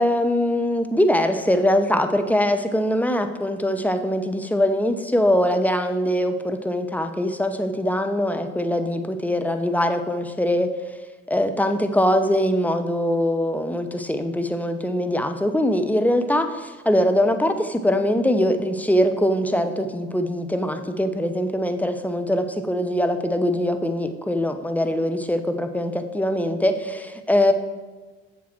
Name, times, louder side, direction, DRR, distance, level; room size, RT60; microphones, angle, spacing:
voice 1, 0.0-10.7 11.3-27.5, left 1 dB, 5° left, 8 dB, 0.7 m, -22 dB
7.5 x 7.1 x 4.4 m, 1.3 s
hypercardioid pair, 60°, 35 cm